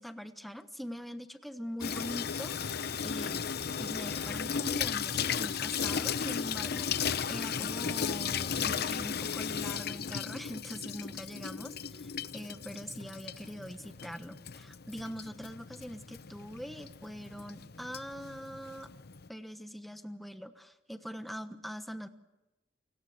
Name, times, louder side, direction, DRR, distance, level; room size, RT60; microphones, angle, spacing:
voice 1, 0.0-3.5 3.8-18.9 19.3-22.1, equal, ahead, 9 dB, 1.1 m, -43 dB
Water tap faucet / Sink (filling or washing), 1.8-19.3, left 7 dB, 55° left, 0.8 m, -35 dB
29.0 x 17.5 x 7.9 m, 1.0 s
head